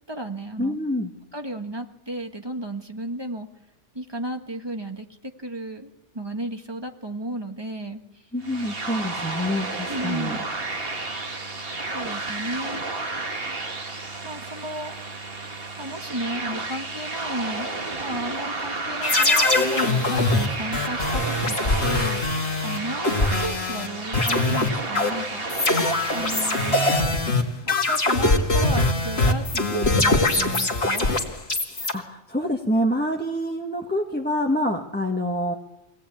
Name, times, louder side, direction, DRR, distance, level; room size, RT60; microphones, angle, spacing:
voice 1, 0.1-0.8 1.3-3.5 3.9-8.2 9.9-10.4 11.9-12.8 14.2-15.0 15.8-17.7 18.0-21.6 21.8-25.4 26.1-26.8 27.6-31.1, right 1 dB, 20° right, 5 dB, 1.7 m, -33 dB
voice 2, 0.6-1.1 8.3-10.3 31.7-35.5, equal, 10° left, 0 dB, 1.5 m, -26 dB
sound 1, 8.4-27.0, right 3 dB, 50° right, 2.1 m, -32 dB
sound 2, 19.0-23.9 24.1-31.9, left 2 dB, 55° left, 2.3 m, -22 dB
23.5 x 17.5 x 8.7 m, 0.91 s
omnidirectional pair, 1.3 m